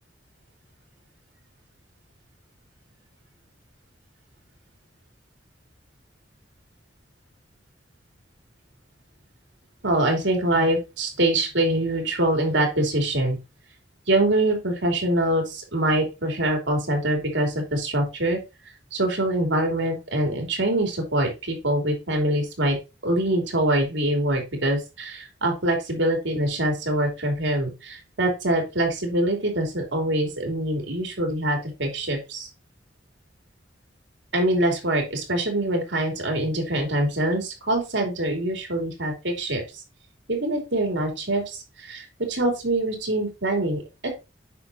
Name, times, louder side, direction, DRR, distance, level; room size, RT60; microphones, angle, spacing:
voice 1, 9.8-13.4 14.1-18.4 18.9-22.8 23.0-32.5 34.3-39.6 40.3-44.1, right 1 dB, 80° right, 3 dB, 3.1 m, -24 dB
8.5 x 6.1 x 2.8 m, 0.26 s
head